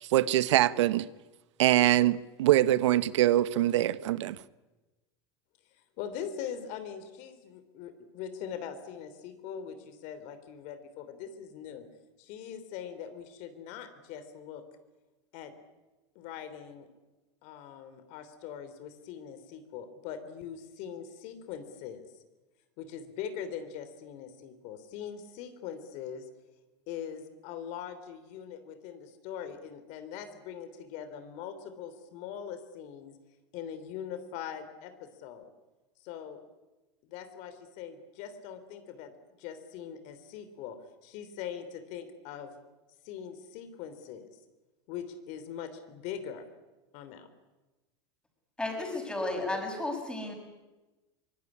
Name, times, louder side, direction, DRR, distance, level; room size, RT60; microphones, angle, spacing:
voice 1, 0.0-1.1 1.6-4.4, right 14 dB, 85° right, 0.9 m, -24 dB
voice 2, 5.7-11.9 12.2-14.6 15.3-15.5 16.1-16.9 17.4-22.2 22.8-26.3 26.9-33.1 33.5-35.5 36.0-36.4 37.0-39.1 39.4-42.5 43.0-44.3 44.9-46.4 46.9-47.3, left 8 dB, 55° left, 3.3 m, -42 dB
voice 3, 48.6-50.3, left 2 dB, 5° left, 6.8 m, -33 dB
24.0 x 19.5 x 10.0 m
supercardioid pair, 125°, 15 cm